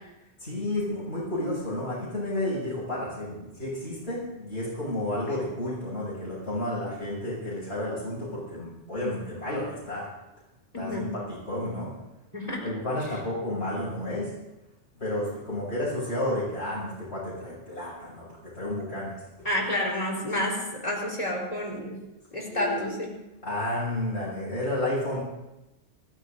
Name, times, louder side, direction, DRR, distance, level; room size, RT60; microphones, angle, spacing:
voice 1, 0.4-10.1 10.8-11.9 12.6-14.3 15.0-19.5 22.5-22.9 23.4-25.2, left 1 dB, 65° left, -9 dB, 7.2 m, -31 dB
voice 2, 10.7-11.1 12.3-12.6 19.4-21.9 22.3-23.1, left 1 dB, 30° left, -2 dB, 4.1 m, -29 dB
28.0 x 14.0 x 2.7 m, 0.99 s
omnidirectional pair, 1.2 m